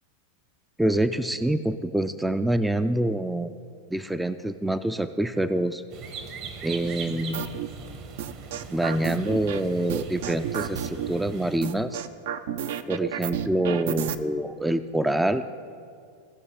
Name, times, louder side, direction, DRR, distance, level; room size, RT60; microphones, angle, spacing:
voice 1, 0.8-3.5 3.9-5.8 6.6-7.4 8.7-12.0 12.9-15.4, right 1 dB, 5° right, 10 dB, 0.3 m, -26 dB
sound 1, 5.9-11.6, right 5 dB, 50° right, 1.2 m, -40 dB
sound 2, 7.3-7.7 8.2-9.6 9.9-11.1 11.6-14.2, right 9 dB, 65° right, 0.5 m, -31 dB
17.5 x 5.9 x 3.7 m, 2.3 s
hypercardioid pair, 95°, 0 cm